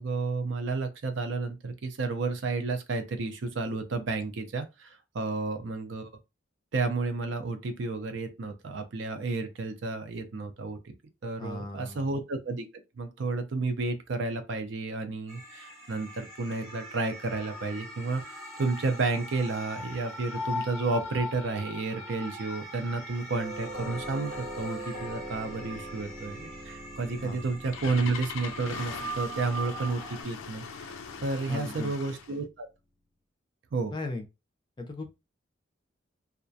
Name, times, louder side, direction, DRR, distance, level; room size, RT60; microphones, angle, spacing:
voice 1, 0.0-6.1 6.7-10.9 11.2-12.7 13.0-18.2 18.6-30.9 31.2-32.7 33.7-33.9, right 3 dB, 65° right, 0.5 m, -31 dB
voice 2, 11.4-12.1 27.1-27.4 31.5-31.9 33.9-34.3 34.8-35.1, left 2 dB, 20° left, 0.4 m, -37 dB
sound 1, 15.3-30.2, equal, 15° right, 0.7 m, -41 dB
Doorbell, 23.3-32.2, right 1 dB, 85° right, 1.1 m, -43 dB
Engine starting, 27.3-32.4, left 6 dB, 85° left, 0.4 m, -41 dB
2.3 x 2.1 x 2.6 m
head